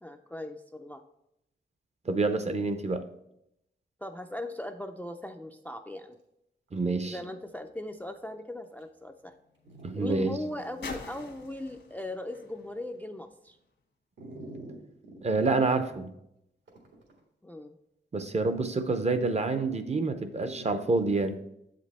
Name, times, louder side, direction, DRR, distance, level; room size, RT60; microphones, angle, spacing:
voice 1, 0.0-1.0 4.0-6.2 7.0-9.3 9.9-13.6 17.4-17.8, left 1 dB, 10° left, 6 dB, 0.3 m, -39 dB
voice 2, 2.1-3.0 6.7-7.2 9.8-10.3 15.2-16.1 18.1-21.4, right 3 dB, 35° right, 9 dB, 0.6 m, -27 dB
Dog, 6.7-6.8 7.1-7.3 8.0-8.1 8.8-8.9 9.6-10.2 10.7-10.8 14.2-15.2 16.7-17.2 20.1-20.7, right 1 dB, 80° right, 1.8 m, -46 dB
sound 1, 7.5-13.8 14.6-14.7, left 4 dB, 80° left, 1.3 m, -49 dB
7.7 x 5.1 x 4.1 m, 0.82 s
wide cardioid pair, 130°, 19 cm